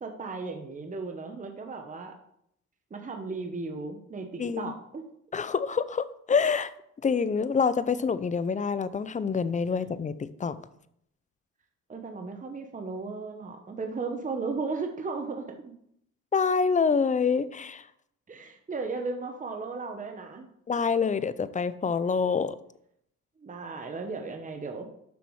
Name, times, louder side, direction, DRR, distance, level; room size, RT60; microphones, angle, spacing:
voice 1, 0.0-2.1 2.9-5.0 11.9-15.7 18.3-20.5 23.4-24.9, right 4 dB, 25° right, 4 dB, 1.0 m, -35 dB
voice 2, 4.4-4.7 5.3-6.7 7.0-10.6 16.3-17.9 20.7-22.6, left 5 dB, 25° left, 15 dB, 0.5 m, -26 dB
7.0 x 5.9 x 4.7 m, 0.73 s
cardioid pair, 90°, 30 cm